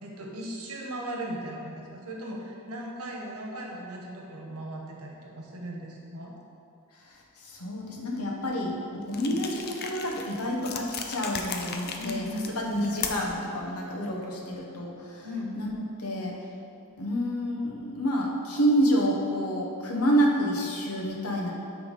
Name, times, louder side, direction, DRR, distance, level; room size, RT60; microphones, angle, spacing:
voice 1, 0.0-6.3 9.1-9.4 12.0-12.5 15.2-15.6, equal, 80° right, -1 dB, 1.2 m, -37 dB
voice 2, 7.1-15.3 15.5-15.7 16.0-16.4 17.0-21.5, equal, 75° left, -1 dB, 1.0 m, -28 dB
sound 1, 9.1-13.4, left 6 dB, 45° left, 0.5 m, -37 dB
8.1 x 3.5 x 5.3 m, 2.5 s
head